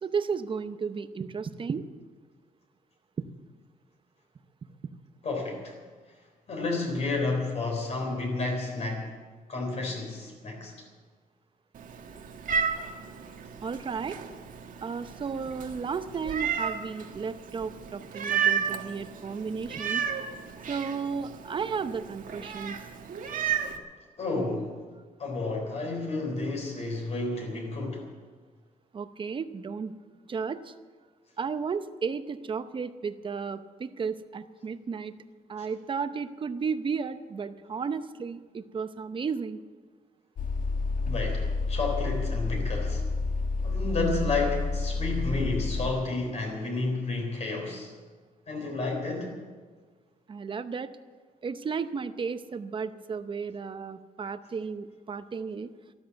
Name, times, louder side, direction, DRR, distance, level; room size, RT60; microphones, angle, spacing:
voice 1, 0.0-1.9 13.6-14.2 14.8-20.0 20.7-22.8 28.9-29.9 30.3-30.8 31.4-35.1 35.5-39.6 50.3-50.9 51.4-55.7, right 5 dB, 35° right, 11 dB, 0.7 m, -33 dB
voice 2, 5.2-5.8 6.5-9.1 9.5-10.7 24.2-24.8 25.2-28.1 35.6-35.7 41.0-43.1 43.6-47.9 48.5-49.4, left 3 dB, 45° left, 1 dB, 3.7 m, -31 dB
Meow, 11.7-23.8, right 7 dB, 65° right, 1.4 m, -33 dB
sound 1, 40.4-45.9, left 3 dB, 65° left, 1.2 m, -29 dB
13.0 x 13.0 x 8.1 m, 1.5 s
wide cardioid pair, 155°, 15 cm